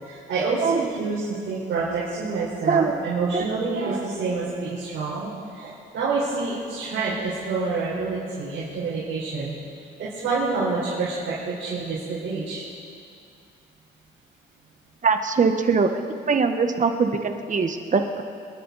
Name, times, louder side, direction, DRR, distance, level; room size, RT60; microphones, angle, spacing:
voice 1, 0.0-9.5 10.2-12.6, right 4 dB, 75° right, -9 dB, 4.5 m, -27 dB
voice 2, 2.7-3.0 3.3-3.5 15.0-18.2, right 5 dB, 40° right, 6 dB, 1.4 m, -22 dB
27.0 x 11.0 x 4.2 m, 2.4 s
cardioid pair, 90°, 20 cm